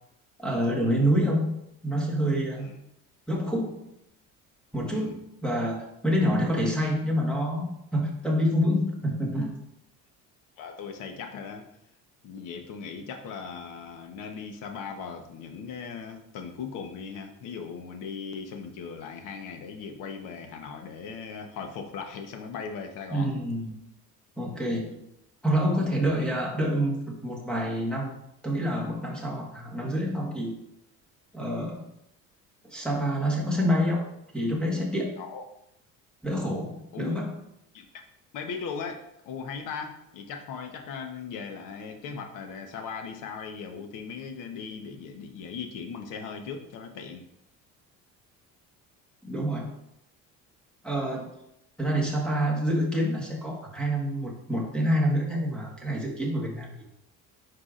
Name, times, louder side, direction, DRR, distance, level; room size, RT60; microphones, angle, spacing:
voice 1, 0.4-1.6 1.8-2.7 3.3-3.9 4.7-9.6 23.1-23.8 24.4-25.0 25.4-28.1 28.4-30.6 31.3-31.9 32.6-34.0 34.3-35.2 36.2-37.4 49.2-49.7 50.8-51.3 51.8-56.7, equal, 5° left, -2 dB, 1.4 m, -27 dB
voice 2, 10.6-11.6 12.2-23.3 35.2-35.5 36.9-37.1 37.7-38.0 38.3-39.0 39.3-47.3, left 6 dB, 70° left, 5 dB, 1.1 m, -38 dB
9.7 x 4.8 x 2.5 m, 0.80 s
cardioid pair, 145°, 33 cm